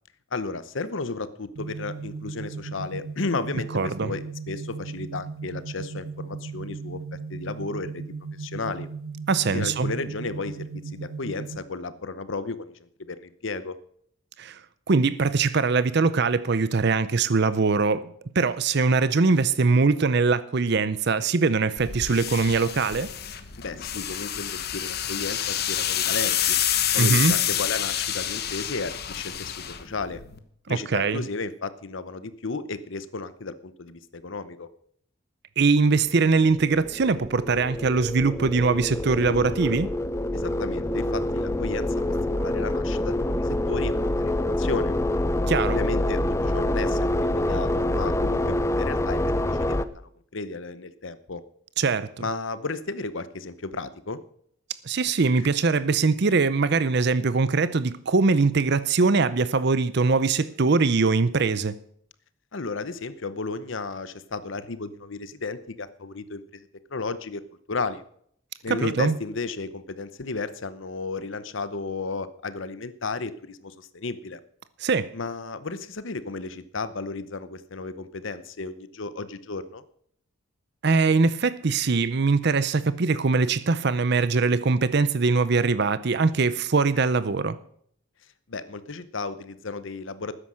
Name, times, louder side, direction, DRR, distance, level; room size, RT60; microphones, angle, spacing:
voice 1, 0.3-7.0 7.3-8.0 8.4-8.9 9.5-12.7 13.1-13.7 23.6-26.6 26.9-30.2 30.7-34.7 40.3-44.9 45.6-49.2 49.5-49.9 50.3-51.4 52.2-54.2 55.4-55.5 62.5-67.4 67.7-68.0 68.6-74.4 75.1-79.8 88.5-90.3, left 3 dB, 65° left, 0.8 m, -34 dB
sound 1, 1.6-11.6, right 4 dB, 80° right, 1.4 m, -37 dB
voice 2, 3.7-4.1 9.3-9.9 14.4-14.6 14.9-23.1 27.0-27.4 30.7-31.2 35.6-39.9 45.5-45.8 51.8-52.1 54.8-61.8 68.7-69.2 74.8-75.1 80.8-87.6, right 4 dB, 55° right, 0.6 m, -22 dB
sound 2, 21.8-30.4, left 10 dB, 50° left, 1.2 m, -28 dB
sound 3, 36.4-49.8, left 1 dB, 15° left, 0.6 m, -26 dB
13.0 x 9.9 x 6.3 m
head